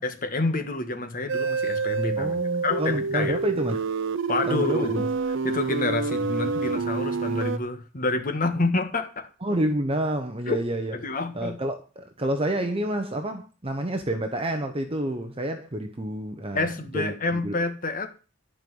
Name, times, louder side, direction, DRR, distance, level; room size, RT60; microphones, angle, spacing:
voice 1, 0.0-3.3 4.3-5.1 5.4-9.3 10.5-10.6 10.9-11.6 16.5-18.1, left 2 dB, 45° left, 1.6 m, -28 dB
sound 1, 1.3-7.6, right 4 dB, 65° right, 0.6 m, -28 dB
voice 2, 2.2-3.9 4.4-4.9 9.4-11.0 11.3-17.6, right 1 dB, 30° right, 1.0 m, -29 dB
12.0 x 5.4 x 7.9 m
head